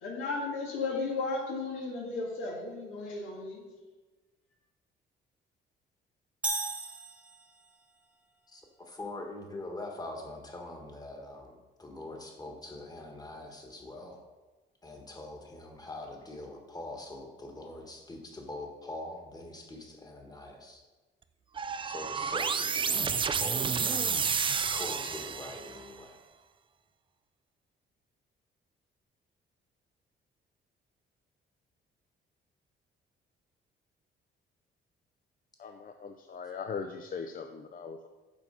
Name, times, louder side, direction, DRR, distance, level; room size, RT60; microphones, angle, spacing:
voice 1, 0.0-3.6, left 3 dB, 85° left, -1 dB, 1.9 m, -34 dB
sound 1, 6.4-7.8, right 2 dB, 5° right, 1.3 m, -35 dB
voice 2, 8.5-14.2 14.8-20.8 21.8-23.8 24.7-26.2, left 2 dB, 20° left, 1 dB, 1.5 m, -43 dB
sound 2, 21.6-25.9, right 6 dB, 25° right, 0.4 m, -30 dB
voice 3, 35.6-38.1, left 5 dB, 45° left, 6 dB, 0.5 m, -40 dB
7.0 x 4.3 x 5.4 m, 1.2 s
cardioid pair, 90°, 20 cm